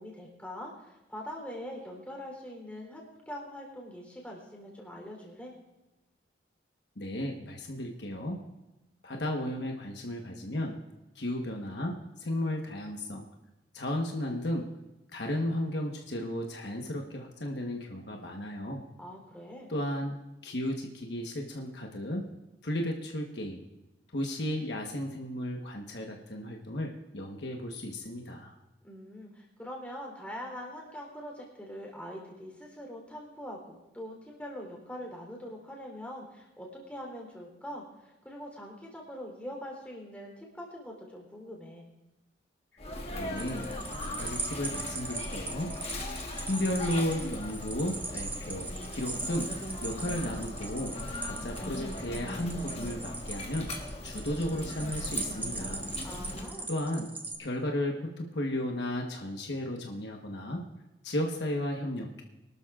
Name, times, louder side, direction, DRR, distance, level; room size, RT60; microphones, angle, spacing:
voice 1, 0.0-5.5 19.0-19.7 28.8-41.8 56.0-56.7, equal, 10° left, -1 dB, 3.6 m, -43 dB
voice 2, 7.0-8.4 9.0-10.8 11.1-13.2 13.7-14.7 15.1-18.8 19.7-20.2 20.4-22.2 22.6-23.6 24.1-28.5 43.1-43.7 44.0-45.7 46.5-49.5 49.8-55.9 56.7-57.1 57.4-60.6 61.0-62.2, left 1 dB, 65° left, 1 dB, 1.3 m, -34 dB
Sneeze, 42.8-56.5, left 1 dB, 35° left, 1.4 m, -39 dB
sound 1, 43.4-57.4, right 3 dB, 10° right, 1.0 m, -40 dB
25.0 x 12.5 x 2.5 m, 1.0 s
head